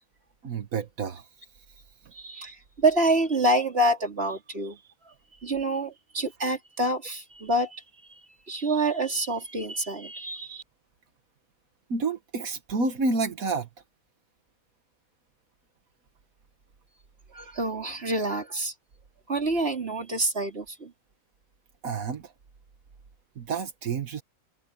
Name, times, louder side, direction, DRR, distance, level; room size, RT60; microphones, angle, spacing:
voice 1, 0.4-1.3 11.9-13.7 21.8-22.3 23.4-24.2, right 4 dB, 85° right, 1.9 m, -29 dB
voice 2, 2.1-5.1 5.4-7.8 8.5-10.6 17.3-18.7 19.3-20.9, right 2 dB, 45° right, 3.8 m, -27 dB
omnidirectional pair, 1.4 m